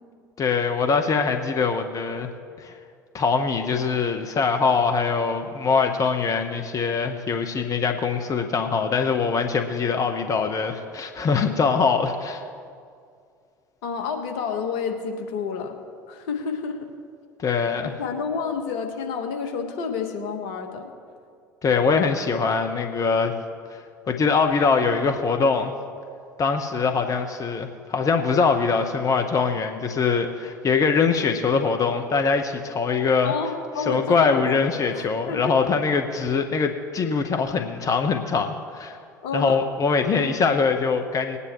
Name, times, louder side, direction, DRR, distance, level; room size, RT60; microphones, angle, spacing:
voice 1, 0.4-2.3 2.6-2.7 3.1-12.4 17.4-17.9 21.6-23.3 23.7-25.7 26.4-33.3 33.9-39.0 39.3-41.4, left 5 dB, 35° left, 5 dB, 1.1 m, -23 dB
voice 2, 13.8-15.8 16.1-16.9 17.8-20.9 33.2-34.6 34.9-35.6 39.2-39.6, left 6 dB, 65° left, 4 dB, 1.5 m, -29 dB
20.5 x 9.7 x 3.1 m, 2.2 s
figure-of-eight pair, 65°, 10 cm